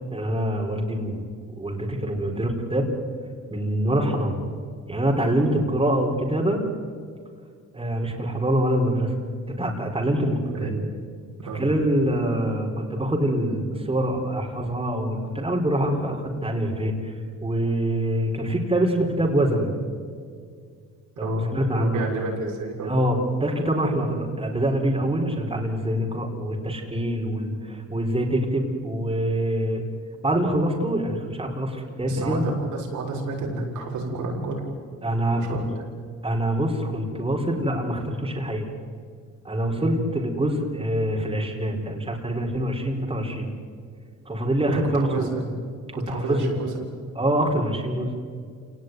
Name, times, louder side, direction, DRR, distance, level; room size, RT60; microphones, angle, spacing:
voice 1, 0.1-2.9 3.5-4.4 4.9-6.6 7.7-9.2 9.5-10.7 11.5-17.1 17.4-19.7 21.2-22.0 22.8-29.8 30.2-32.4 35.0-35.7 36.2-38.7 39.4-43.5 44.3-45.3 45.9-46.5 47.1-48.1, right 1 dB, 20° right, 1 dB, 4.5 m, -25 dB
voice 2, 10.4-10.9 11.4-11.7 21.2-22.9 32.1-32.5 32.9-34.6 35.3-35.8 39.8-39.9 44.7-45.5 45.9-46.8, right 2 dB, 80° right, -2 dB, 6.8 m, -30 dB
27.5 x 18.5 x 9.6 m, 2.1 s
cardioid pair, 90°, 30 cm